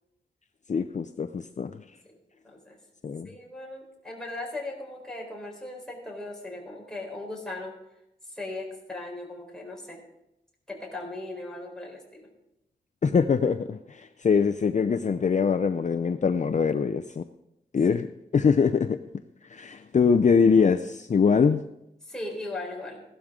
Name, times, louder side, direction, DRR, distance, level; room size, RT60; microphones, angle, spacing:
voice 1, 0.7-1.8 3.0-3.3 13.0-17.2 17.7-19.0 19.5-21.6, left 5 dB, 45° left, 9 dB, 0.5 m, -23 dB
voice 2, 2.4-2.8 3.3-7.7 8.2-10.0 10.7-12.3 22.0-23.0, left 2 dB, 5° left, -2 dB, 4.0 m, -38 dB
16.0 x 12.0 x 3.7 m, 0.86 s
wide cardioid pair, 120°, 17 cm